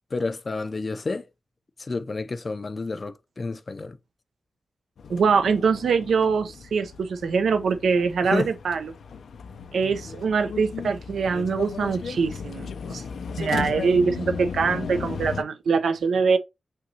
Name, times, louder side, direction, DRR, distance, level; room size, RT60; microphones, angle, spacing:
voice 1, 0.1-1.3 1.8-4.0 8.2-8.5, left 3 dB, 35° left, 0.4 m, -30 dB
sound 1, 5.0-15.4, left 5 dB, 85° left, 0.5 m, -35 dB
voice 2, 5.1-8.8 9.7-13.0 13.4-16.4, right 5 dB, 90° right, 0.6 m, -23 dB
5.6 x 2.9 x 2.8 m
wide cardioid pair, 125°, 0 cm